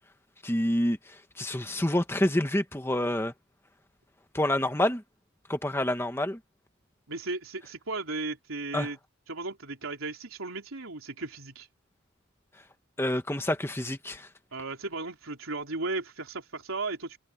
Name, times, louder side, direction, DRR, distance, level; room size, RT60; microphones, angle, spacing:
voice 1, 0.4-3.3 4.3-5.0 5.5-6.4 8.7-8.9 13.0-14.3, left 1 dB, 10° left, 1.3 m, -28 dB
voice 2, 7.1-9.0 9.3-11.7 14.5-17.2, right 3 dB, 85° right, 3.8 m, -35 dB
open air
head